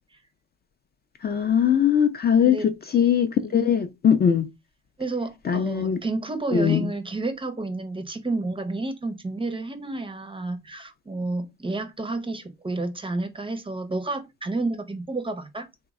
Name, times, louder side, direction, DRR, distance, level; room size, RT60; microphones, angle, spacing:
voice 1, 1.2-4.5 5.5-6.0 6.5-6.9, left 8 dB, 35° left, 0.4 m, -21 dB
voice 2, 2.4-2.7 3.5-3.7 5.0-15.7, right 2 dB, 15° right, 0.5 m, -30 dB
3.3 x 2.1 x 3.5 m
cardioid pair, 90°, 30 cm